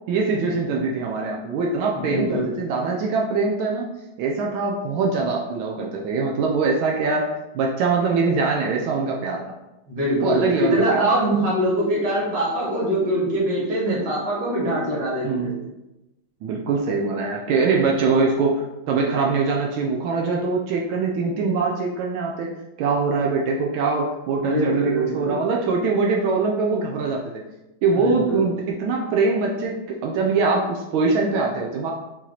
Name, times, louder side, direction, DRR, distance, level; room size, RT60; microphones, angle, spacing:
voice 1, 0.1-3.9 4.2-7.2 7.5-9.4 10.2-11.2 15.2-15.5 16.4-27.2 27.8-31.9, right 4 dB, 85° right, -1 dB, 1.4 m, -23 dB
voice 2, 1.9-2.6 9.9-15.6 24.4-25.4 28.0-28.4, right 1 dB, 55° right, -5 dB, 2.0 m, -23 dB
4.6 x 2.8 x 3.9 m, 0.96 s
omnidirectional pair, 2.2 m